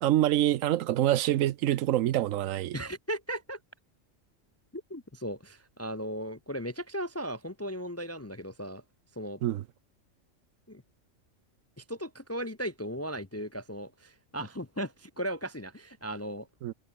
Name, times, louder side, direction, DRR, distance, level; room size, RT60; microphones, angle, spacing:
voice 1, 0.0-2.8 9.4-9.6 16.6-16.7, right 13 dB, 90° right, 1.0 m, -26 dB
voice 2, 2.7-3.6 4.7-8.8 9.2-9.4 10.7-10.8 11.8-16.5, equal, 20° left, 0.4 m, -37 dB
omnidirectional pair, 1.3 m